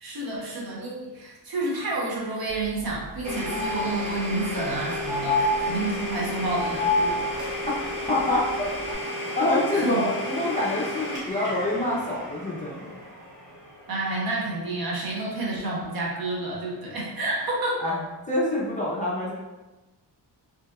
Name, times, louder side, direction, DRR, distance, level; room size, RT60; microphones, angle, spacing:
voice 1, 0.0-7.3 9.7-10.1 13.9-18.0, right 2 dB, 55° right, -3 dB, 0.8 m, -29 dB
sound 1, 2.5-2.6 2.9-3.0 3.5-4.4 5.1-6.1 6.6-7.5 8.8-8.9, left 2 dB, 35° right, 0.6 m, -27 dB
Domestic sounds home sounds, 3.2-14.9, left 1 dB, 85° right, 1.5 m, -33 dB
voice 2, 8.1-8.7 9.3-13.0 17.8-18.0 18.3-19.3, left 1 dB, 20° left, -6 dB, 0.4 m, -26 dB
2.9 x 2.8 x 2.3 m, 1.1 s
wide cardioid pair, 165°, 43 cm